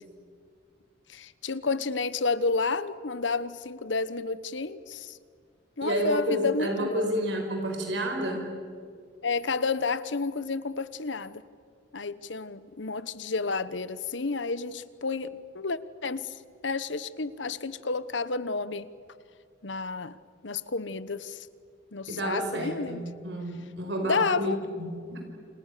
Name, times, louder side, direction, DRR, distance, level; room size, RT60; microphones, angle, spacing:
voice 1, 1.1-5.2 5.8-7.1 9.2-11.4 11.9-16.4 16.6-18.9 19.6-20.2 20.4-21.5 21.9-23.0 24.0-24.6, left 4 dB, 80° left, 15 dB, 1.2 m, -30 dB
voice 2, 5.8-8.5 22.1-25.3, equal, 70° right, 3 dB, 5.0 m, -30 dB
29.0 x 28.5 x 6.9 m, 2.2 s
head